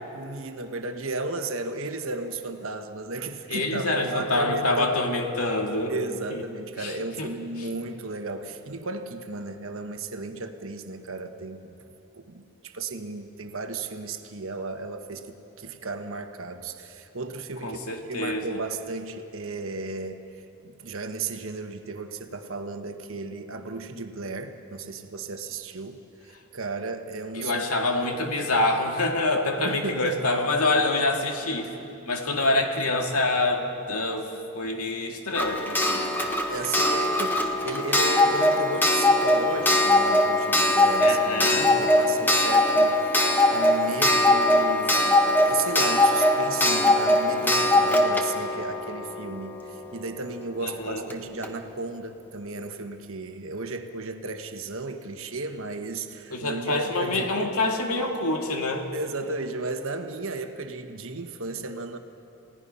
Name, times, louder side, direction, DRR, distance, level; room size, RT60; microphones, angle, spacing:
voice 1, 0.1-5.1 5.9-11.7 12.1-17.8 18.1-20.2 20.6-26.0 26.2-27.6 29.6-30.2 36.5-57.5 58.9-62.0, right 3 dB, 60° right, 6 dB, 1.3 m, -34 dB
voice 2, 3.5-5.9 6.3-6.4 6.8-7.3 7.6-7.7 17.6-18.6 27.3-31.8 32.1-36.1 41.0-41.7 50.6-51.1 56.3-58.9, left 2 dB, 80° left, 2 dB, 2.1 m, -26 dB
Clock, 35.3-49.9 51.1-51.2 51.4-51.5, left 1 dB, 10° left, 1.2 m, -21 dB
29.0 x 17.0 x 5.6 m, 2.8 s
head